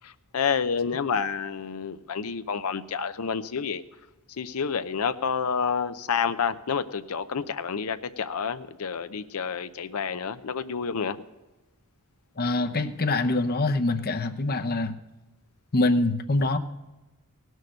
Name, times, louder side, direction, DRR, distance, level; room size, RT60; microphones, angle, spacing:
voice 1, 0.0-3.8 4.4-11.2, left 6 dB, 80° left, 11 dB, 0.6 m, -29 dB
voice 2, 12.4-14.9 15.7-16.6, left 2 dB, 45° left, 8 dB, 0.8 m, -24 dB
17.5 x 6.4 x 6.4 m, 1.1 s
head